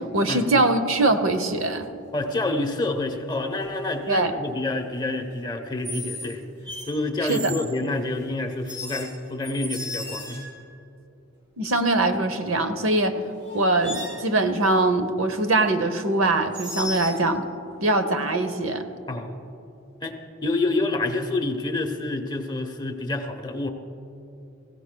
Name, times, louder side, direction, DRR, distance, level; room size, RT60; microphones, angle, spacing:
voice 1, 0.0-1.9 4.1-4.3 7.2-7.5 11.6-13.2 13.5-17.4 17.8-18.8, right 2 dB, 75° right, 9 dB, 0.8 m, -22 dB
sound 1, 1.5-1.8 3.6-3.9 5.8-6.3 6.7-7.7 8.7-10.7 12.9-13.0 13.4-14.3 16.5-17.2, left 1 dB, 20° right, 3.5 m, -35 dB
voice 2, 2.1-6.5 6.9-10.4 19.1-19.3 20.0-23.7, left 2 dB, 20° left, 5 dB, 0.9 m, -28 dB
20.5 x 16.0 x 2.2 m, 2.9 s
head